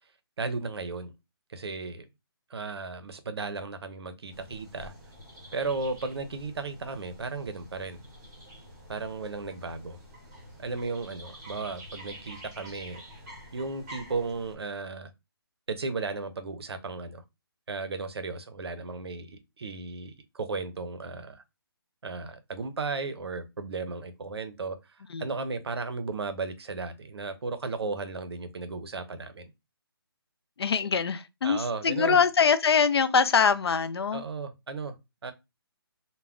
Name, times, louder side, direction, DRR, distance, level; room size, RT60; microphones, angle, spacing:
voice 1, 0.4-1.1 1.5-2.1 2.5-4.9 5.5-8.0 8.9-10.0 10.6-13.0 13.5-15.1 15.7-17.2 17.7-21.4 22.0-24.8 25.2-29.5 31.4-32.2 34.1-34.9 35.2-35.3, right 3 dB, 85° right, 0.6 m, -35 dB
sound 1, 4.3-14.5, equal, 15° right, 0.7 m, -48 dB
voice 2, 30.6-34.2, left 6 dB, 80° left, 0.4 m, -23 dB
2.2 x 2.1 x 3.5 m
hypercardioid pair, 175°, 13 cm